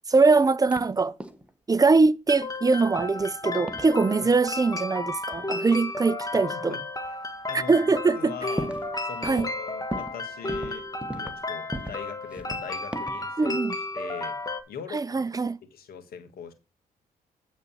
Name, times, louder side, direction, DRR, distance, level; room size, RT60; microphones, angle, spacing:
voice 1, 0.1-1.1 1.7-6.8 7.5-8.4 9.2-9.5 13.4-13.8 14.9-15.6, right 4 dB, 20° right, 0.5 m, -22 dB
sound 1, 0.7-0.9 1.2-1.5 3.0-3.3 3.7-3.9 5.3-5.4 6.3-6.4 7.0-7.1 7.6-7.7 7.9-8.9 9.2-9.6 9.9-10.2 10.5-11.4 11.7-12.0 12.3-13.3, right 1 dB, 5° right, 1.2 m, -37 dB
sound 2, 2.3-14.6, left 2 dB, 20° left, 1.7 m, -33 dB
voice 2, 7.5-7.8 8.2-8.7 9.0-10.9 11.1-13.6 13.9-14.3 14.7-15.2 15.7-16.5, left 7 dB, 70° left, 1.7 m, -40 dB
8.7 x 4.0 x 6.9 m
supercardioid pair, 55°, 16 cm